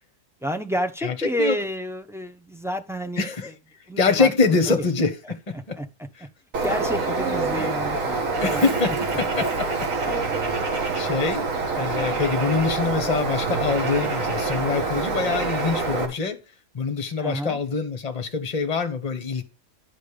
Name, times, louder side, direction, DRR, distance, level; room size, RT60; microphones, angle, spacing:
voice 1, 0.4-3.3 3.9-4.6 5.8-5.9 6.6-8.6 17.2-17.6, equal, 5° right, 0.4 m, -29 dB
voice 2, 1.0-1.6 3.2-3.5 4.0-5.4 5.7-5.8 6.1-6.3 7.5-7.7 8.4-9.7 10.0-10.2 10.9-16.4 16.7-19.4, left 4 dB, 25° left, 1.3 m, -25 dB
Bird, 6.5-16.0, right 3 dB, 55° right, 2.1 m, -26 dB
11.5 x 5.3 x 5.1 m
omnidirectional pair, 1.7 m